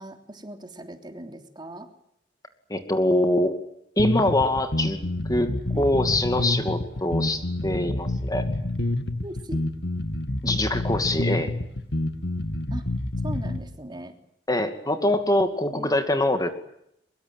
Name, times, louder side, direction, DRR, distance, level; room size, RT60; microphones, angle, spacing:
voice 1, 0.0-1.9 5.7-5.8 9.2-9.6 12.7-12.9 13.2-14.2 15.7-15.9, right 1 dB, 25° right, 6 dB, 3.2 m, -39 dB
voice 2, 2.7-3.6 4.0-5.0 5.3-8.5 10.4-11.5 14.5-16.5, left 1 dB, 20° left, 8 dB, 2.4 m, -24 dB
sound 1, 4.0-13.6, left 1 dB, 70° left, 2.3 m, -28 dB
24.0 x 23.0 x 9.1 m, 0.75 s
head